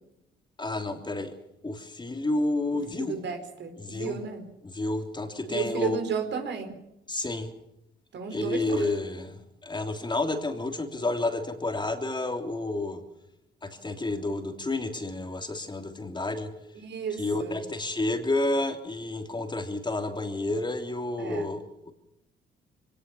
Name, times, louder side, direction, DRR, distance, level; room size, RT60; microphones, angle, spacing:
voice 1, 0.6-1.3 1.6-3.2 3.8-4.2 4.6-6.0 7.1-7.5 8.3-13.0 13.6-16.5 17.1-21.9, left 2 dB, 20° left, 5 dB, 3.2 m, -30 dB
voice 2, 2.9-4.5 5.5-6.7 8.1-8.9 16.8-17.6 21.2-21.5, right 6 dB, 65° right, 7 dB, 4.5 m, -33 dB
23.0 x 19.0 x 7.1 m, 0.84 s
cardioid pair, 90°, 20 cm